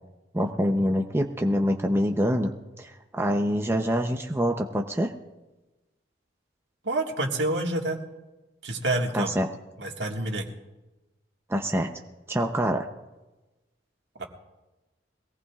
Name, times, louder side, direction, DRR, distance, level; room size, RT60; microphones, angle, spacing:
voice 1, 0.3-2.5 2.8-5.1 9.1-9.5 11.5-11.9 12.3-12.9, equal, 15° right, 3 dB, 0.7 m, -25 dB
voice 2, 6.8-8.0 8.6-9.3 9.8-10.5 14.2-14.3, right 2 dB, 75° right, 1 dB, 1.8 m, -28 dB
22.5 x 18.0 x 2.4 m, 1.1 s
head